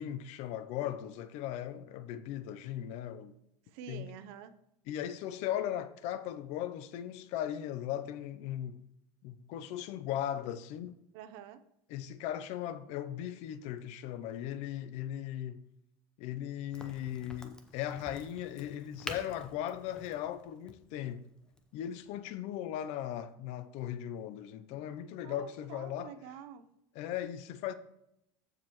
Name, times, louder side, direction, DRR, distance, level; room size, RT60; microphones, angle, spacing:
voice 1, 0.0-3.3 3.9-4.0 4.9-8.8 9.2-10.9 11.9-15.6 16.2-21.3 21.7-26.1 26.9-27.7, left 11 dB, 60° left, 0.6 m, -38 dB
voice 2, 3.7-4.5 11.1-11.6 25.2-26.7, right 9 dB, 70° right, 0.8 m, -47 dB
Crack, 16.7-22.2, left 1 dB, 5° left, 0.8 m, -48 dB
14.0 x 4.9 x 3.1 m
supercardioid pair, 135°, 13 cm